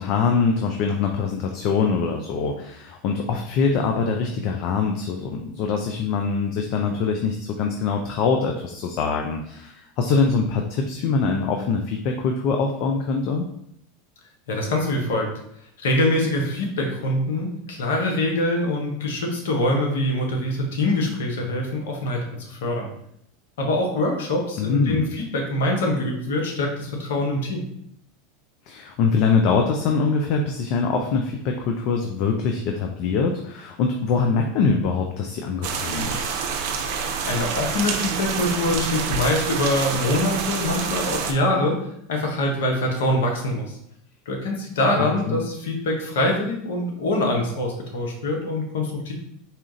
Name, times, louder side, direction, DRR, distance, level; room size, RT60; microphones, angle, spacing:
voice 1, 0.0-13.4 24.6-25.1 28.7-36.3 45.0-45.4, left 5 dB, 55° left, 3 dB, 0.5 m, -23 dB
voice 2, 14.5-15.3 15.8-22.9 23.6-27.7 37.2-41.8 42.1-43.7 44.3-49.1, left 1 dB, 75° left, 0 dB, 1.0 m, -24 dB
sound 1, 35.6-41.3, right 6 dB, 60° right, 0.6 m, -27 dB
4.2 x 2.4 x 3.8 m, 0.72 s
hypercardioid pair, 90°, 0 cm